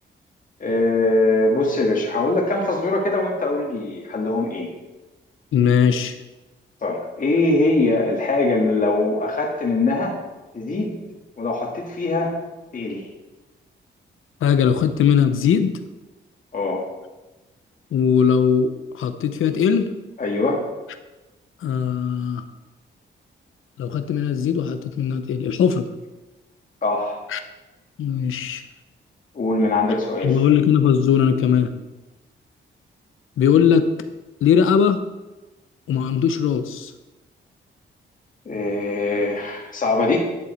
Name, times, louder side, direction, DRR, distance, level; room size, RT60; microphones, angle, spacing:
voice 1, 0.6-4.7 6.8-10.2 10.5-11.0 11.4-12.4 12.7-13.1 16.5-16.9 20.2-20.6 26.8-27.2 29.3-30.4 38.5-40.2, left 2 dB, 40° left, -2 dB, 1.8 m, -22 dB
voice 2, 5.5-6.1 14.4-15.7 17.9-19.9 21.6-22.4 23.8-25.9 27.3-27.4 28.0-28.6 30.2-31.7 33.4-33.9 34.4-35.0 35.9-36.9, left 7 dB, 90° left, 9 dB, 0.8 m, -19 dB
11.0 x 7.0 x 4.4 m, 1.1 s
cardioid pair, 105°, 20 cm